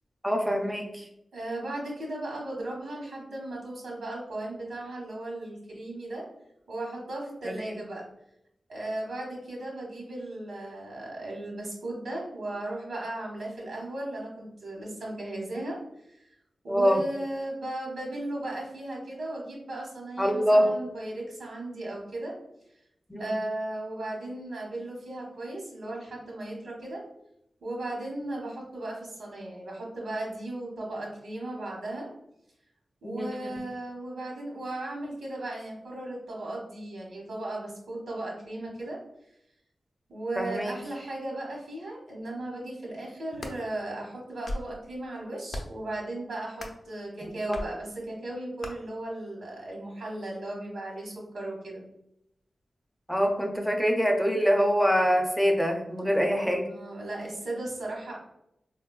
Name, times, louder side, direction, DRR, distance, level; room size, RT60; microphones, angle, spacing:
voice 1, 0.2-1.0 7.5-7.8 16.7-17.0 20.2-20.7 23.1-23.3 33.0-33.6 40.4-40.7 47.5-47.6 53.1-56.7, equal, ahead, 3 dB, 0.4 m, -25 dB
voice 2, 1.3-6.2 6.7-8.0 8.7-15.8 16.0-16.3 16.6-22.3 23.2-27.0 27.6-32.1 33.0-39.0 40.1-51.8 56.6-58.2, right 1 dB, 80° right, -2 dB, 0.9 m, -36 dB
sound 1, 43.1-43.6 44.2-44.7 45.5-45.8 46.6-46.9 47.5-47.7 48.6-48.7, left 1 dB, 60° left, 0.5 m, -37 dB
3.9 x 2.2 x 2.2 m, 0.81 s
wide cardioid pair, 130°, 0 cm